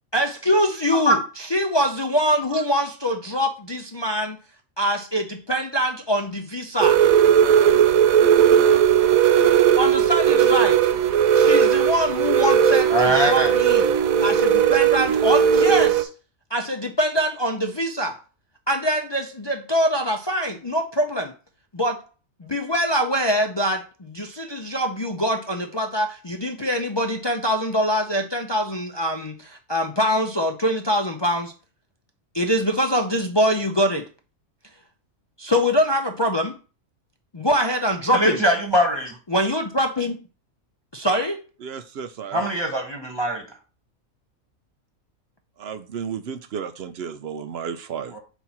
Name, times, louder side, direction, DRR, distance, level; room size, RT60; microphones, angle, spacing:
voice 1, 0.1-4.4 4.8-7.0 9.8-10.9 11.3-13.9 14.2-16.1 16.5-18.2 18.7-21.3 21.7-22.0 22.4-31.5 32.3-34.1 35.4-36.6 37.3-38.4 39.3-40.2 40.9-41.4, equal, 45° left, 0.3 m, -24 dB
sound 1, 6.8-16.0, right 8 dB, 85° right, 1.0 m, -17 dB
voice 2, 12.9-13.6 38.1-39.1 42.3-43.4 48.1-48.2, equal, 20° right, 1.2 m, -22 dB
voice 3, 41.6-42.5 45.6-48.1, right 7 dB, 65° right, 0.6 m, -33 dB
4.5 x 4.1 x 5.8 m
omnidirectional pair, 1.4 m